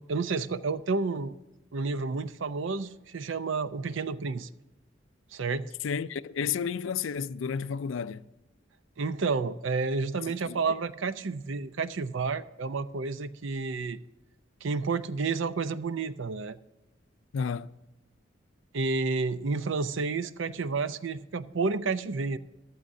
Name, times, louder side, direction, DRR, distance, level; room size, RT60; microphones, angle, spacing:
voice 1, 0.0-1.3 1.7-4.5 5.3-5.7 9.0-14.0 14.6-16.6 18.7-22.4, right 4 dB, 70° right, 0.6 m, -30 dB
voice 2, 5.8-8.2 10.4-10.8 17.3-17.7, left 6 dB, 75° left, 0.4 m, -32 dB
14.5 x 12.5 x 2.7 m
head